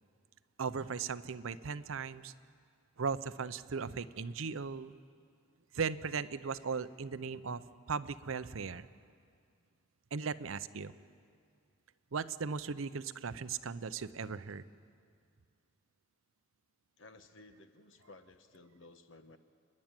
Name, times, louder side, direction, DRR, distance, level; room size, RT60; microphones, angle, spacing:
voice 1, 0.6-2.3 3.0-5.0 5.7-8.9 10.1-10.9 12.1-14.6, right 5 dB, 75° right, 14 dB, 0.6 m, -37 dB
voice 2, 17.0-19.4, left 2 dB, 65° left, 9 dB, 1.1 m, -56 dB
30.0 x 11.0 x 9.0 m, 2.2 s
head